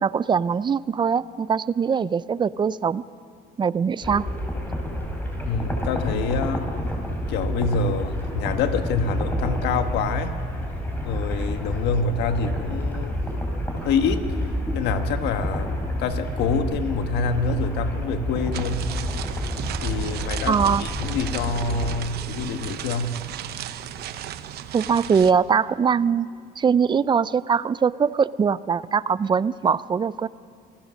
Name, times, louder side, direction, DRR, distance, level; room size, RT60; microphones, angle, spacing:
voice 1, 0.0-3.0 3.6-4.3 20.5-20.8 24.7-30.3, right 6 dB, 25° right, 19 dB, 0.4 m, -22 dB
sound 1, 4.0-22.0, equal, 10° left, 4.1 m, -29 dB
voice 2, 5.4-6.7 7.3-10.3 11.0-13.2 13.8-14.3 14.7-18.9 19.8-23.2, left 4 dB, 85° left, 8 dB, 1.5 m, -26 dB
sound 2, 18.5-25.3, right 11 dB, 70° right, 0.9 m, -35 dB
26.5 x 16.5 x 6.4 m, 2.3 s
cardioid pair, 110°, 17 cm